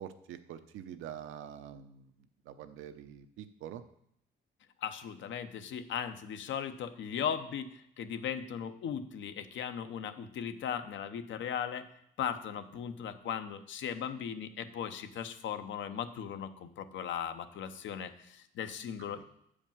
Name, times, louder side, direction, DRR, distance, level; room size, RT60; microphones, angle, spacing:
voice 1, 0.0-2.1 2.4-3.8 19.2-19.3, right 9 dB, 85° right, 10 dB, 0.8 m, -45 dB
voice 2, 4.8-11.9 12.2-19.2, left 8 dB, 75° left, 10 dB, 0.9 m, -38 dB
8.0 x 5.1 x 7.3 m, 0.73 s
cardioid pair, 90°, 20 cm